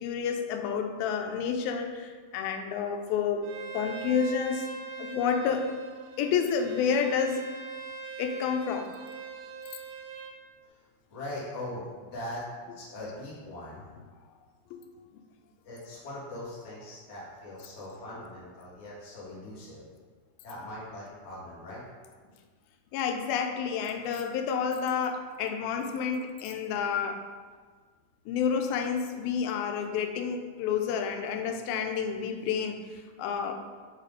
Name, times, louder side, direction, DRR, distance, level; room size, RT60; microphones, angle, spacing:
voice 1, 0.0-3.4 3.7-4.7 5.0-5.6 6.2-7.4 8.2-8.9 12.7-12.8 14.7-14.8 22.9-27.2 28.3-33.6, left 6 dB, 90° left, 5 dB, 2.4 m, -29 dB
Bowed string instrument, 3.4-10.4, right 5 dB, 85° right, 2.5 m, -42 dB
voice 2, 11.1-12.4 12.7-13.9 15.6-19.9 20.4-21.8, left 1 dB, 45° left, -7 dB, 0.9 m, -41 dB
5.7 x 4.1 x 5.0 m, 1.5 s
omnidirectional pair, 4.2 m